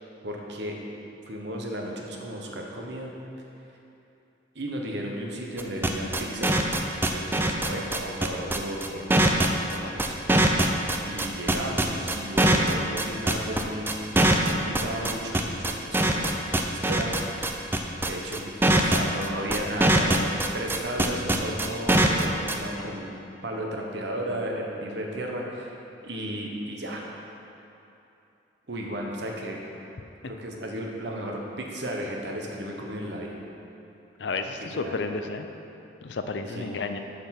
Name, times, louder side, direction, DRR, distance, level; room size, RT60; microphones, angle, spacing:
voice 1, 0.2-0.8 1.3-3.1 4.5-6.5 7.1-10.2 11.0-14.2 14.5-17.1 18.0-25.7 26.0-27.0 28.7-29.6 30.3-33.4 34.7-35.0 36.5-36.7, right 1 dB, 65° right, 0 dB, 1.1 m, -34 dB
sound 1, 5.6-22.5, right 1 dB, 10° right, 0.4 m, -22 dB
voice 2, 34.2-35.5 36.0-37.0, left 3 dB, 65° left, 7 dB, 0.5 m, -31 dB
6.8 x 6.3 x 5.9 m, 2.8 s
head